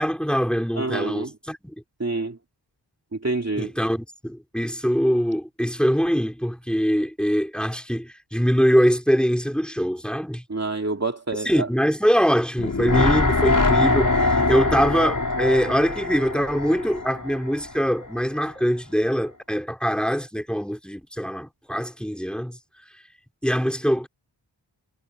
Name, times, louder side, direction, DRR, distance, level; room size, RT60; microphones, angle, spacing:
voice 1, 0.0-1.7 3.6-10.4 11.4-22.6 23.4-24.1, equal, ahead, 4.5 m, -23 dB
voice 2, 0.7-1.3 2.0-2.4 3.1-3.7 10.5-11.7, right 3 dB, 35° right, 2.6 m, -27 dB
sound 1, 12.6-17.7 18.0-18.1, left 3 dB, 45° left, 4.5 m, -23 dB
wide cardioid pair, 80°, 45 cm